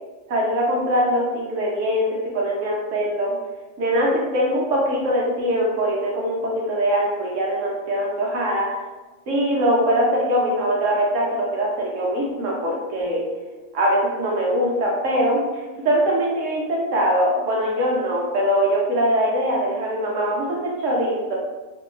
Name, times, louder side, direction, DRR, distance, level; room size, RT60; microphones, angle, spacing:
voice 1, 0.3-3.4 3.8-8.7 9.3-13.2 13.7-21.4, equal, 65° right, -3 dB, 0.9 m, -22 dB
3.3 x 2.6 x 3.3 m, 1.2 s
omnidirectional pair, 1.7 m